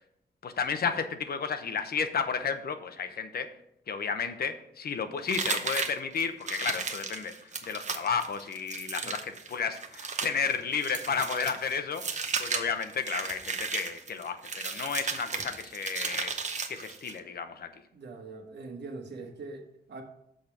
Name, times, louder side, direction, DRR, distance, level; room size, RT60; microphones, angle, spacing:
voice 1, 0.4-3.5 3.9-7.3 7.6-12.0 12.4-16.3 16.7-17.7, left 6 dB, 65° left, 9 dB, 0.8 m, -32 dB
sound 1, 5.3-17.2, right 5 dB, 45° right, 0.8 m, -35 dB
voice 2, 17.9-20.0, right 3 dB, 80° right, 4 dB, 1.3 m, -42 dB
6.4 x 5.1 x 5.9 m, 0.77 s
wide cardioid pair, 120°, 17 cm